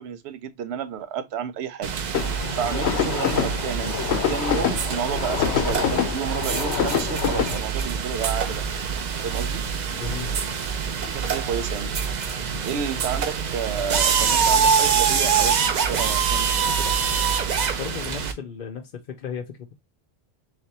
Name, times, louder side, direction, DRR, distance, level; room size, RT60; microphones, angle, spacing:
voice 1, 0.0-1.9 2.5-3.9 4.3-8.6 9.2-9.6 11.0-11.9 12.6-16.9, right 8 dB, 80° right, 0.8 m, -31 dB
sound 1, 1.8-18.3, right 6 dB, 50° right, 0.6 m, -25 dB
sound 2, 2.1-7.6, left 8 dB, 85° left, 0.9 m, -26 dB
voice 2, 9.9-10.3 17.8-19.7, left 7 dB, 55° left, 0.7 m, -35 dB
3.4 x 3.3 x 2.7 m
omnidirectional pair, 1.1 m